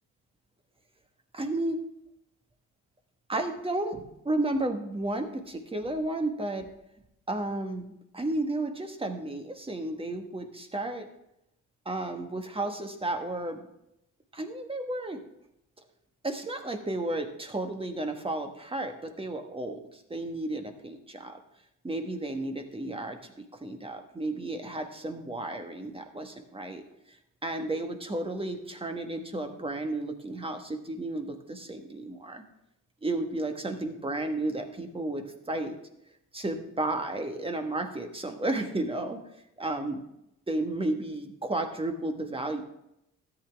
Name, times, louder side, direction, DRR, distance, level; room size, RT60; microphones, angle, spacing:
voice 1, 1.3-1.8 3.3-6.7 7.3-11.1 11.8-13.7 14.3-15.2 16.2-21.4 21.8-26.8 27.4-32.4 33.0-35.8 36.3-39.2 39.6-40.0 40.5-42.6, right 2 dB, 20° right, 5 dB, 1.4 m, -33 dB
13.0 x 8.5 x 3.5 m, 0.82 s
cardioid pair, 90°, 30 cm